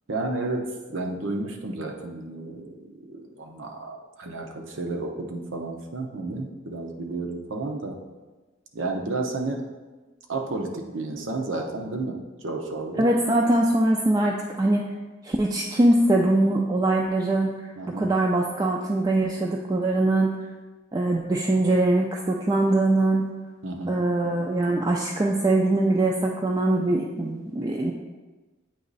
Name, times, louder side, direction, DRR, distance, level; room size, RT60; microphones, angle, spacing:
voice 1, 0.1-8.0 8.7-9.6 10.3-12.2 12.4-13.1 17.8-18.1 23.6-24.0, right 2 dB, 90° right, 2 dB, 0.8 m, -32 dB
voice 2, 13.0-14.8 15.2-17.7 18.0-20.4 20.9-23.3 23.9-27.9, right 2 dB, 20° right, -1 dB, 0.3 m, -22 dB
8.5 x 3.1 x 4.0 m, 1.2 s
head